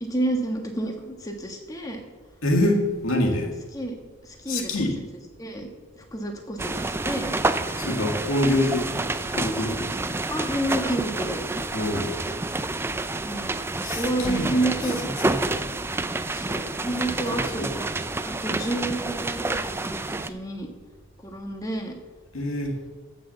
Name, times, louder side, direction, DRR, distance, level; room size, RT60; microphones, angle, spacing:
voice 1, 0.0-2.0 3.7-3.9 4.2-4.9 5.4-5.7 6.0-7.3 10.3-11.4 13.2-13.6 13.9-15.0 16.3-17.8 18.2-20.7 21.2-21.9, right 1 dB, 15° left, 3 dB, 1.5 m, -29 dB
voice 2, 2.4-3.6 4.5-4.9 7.8-8.9 9.3-10.0 11.7-12.1 13.8-14.5 15.2-15.3 17.3-17.7 22.3-22.8, left 1 dB, 80° left, 2 dB, 2.0 m, -25 dB
sound 1, 6.6-20.3, right 2 dB, 10° right, 0.3 m, -29 dB
14.5 x 6.2 x 6.9 m, 1.3 s
head